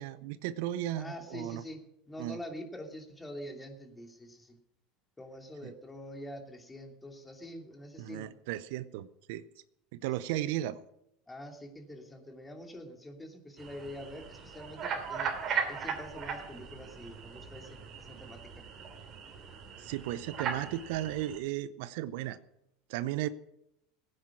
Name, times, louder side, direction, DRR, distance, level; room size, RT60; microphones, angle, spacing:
voice 1, 0.0-1.6 2.2-2.4 5.6-5.7 8.0-9.4 9.9-10.8 19.8-22.4 22.9-23.3, right 13 dB, 65° right, 16 dB, 0.6 m, -35 dB
voice 2, 0.9-1.8 2.1-4.6 5.2-8.3 11.3-15.3 15.7-18.6, left 1 dB, 15° left, 3 dB, 2.8 m, -45 dB
sound 1, 13.6-21.4, right 6 dB, 45° right, 3.1 m, -38 dB
17.0 x 9.7 x 6.0 m, 0.82 s
hypercardioid pair, 85°, 0 cm